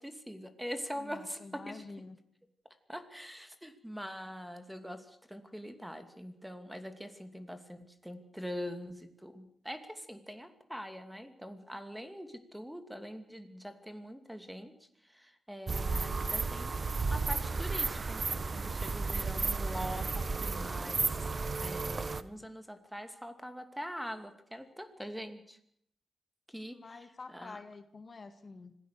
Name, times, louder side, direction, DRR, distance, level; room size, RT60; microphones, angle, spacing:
voice 1, 0.0-1.8 2.9-14.8 15.0-16.8 17.1-21.2 21.6-25.6 26.5-27.6, equal, 5° right, 8 dB, 2.6 m, -43 dB
voice 2, 1.0-2.2 26.7-28.8, left 3 dB, 45° left, 8 dB, 1.9 m, -48 dB
sound 1, 15.7-22.2, right 4 dB, 45° right, 1.2 m, -33 dB
25.5 x 17.0 x 6.8 m, 0.68 s
cardioid pair, 75°, 0 cm